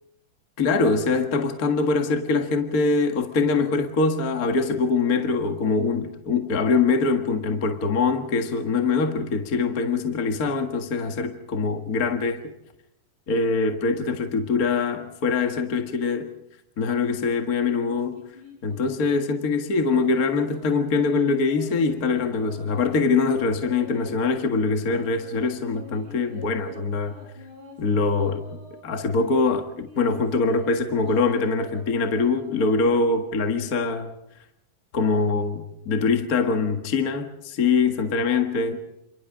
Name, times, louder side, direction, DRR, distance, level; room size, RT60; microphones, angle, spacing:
voice 1, 0.6-12.5 13.3-16.3 16.8-18.2 18.6-27.2 27.8-28.4 28.8-34.1 34.9-38.8, left 4 dB, 35° left, 1.6 m, -23 dB
sound 1, 17.7-19.2 19.9-24.2 24.7-28.9 29.5-33.7, left 2 dB, 65° right, 8.7 m, -48 dB
29.0 x 28.0 x 3.8 m
omnidirectional pair, 3.7 m